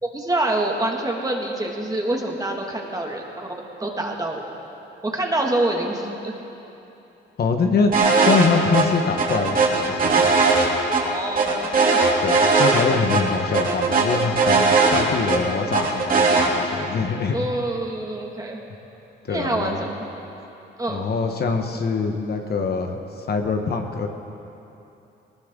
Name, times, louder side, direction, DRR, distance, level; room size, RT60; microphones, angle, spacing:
voice 1, 0.0-3.5 3.8-4.5 5.0-6.3 11.0-12.0 17.3-18.6 19.3-19.9 20.8-21.0, right 1 dB, 20° right, 0 dB, 2.2 m, -26 dB
voice 2, 7.4-7.9 8.2-10.4 12.2-17.4 19.2-19.8 20.9-24.1, left 4 dB, 55° left, 4 dB, 1.3 m, -24 dB
sound 1, 7.9-8.5 8.7-8.8 9.2-11.0 11.4-12.8 13.1-13.2 13.5-15.4 15.7-16.5, right 4 dB, 45° right, 3.1 m, -18 dB
19.5 x 19.0 x 3.9 m, 2.9 s
cardioid pair, 90°, 20 cm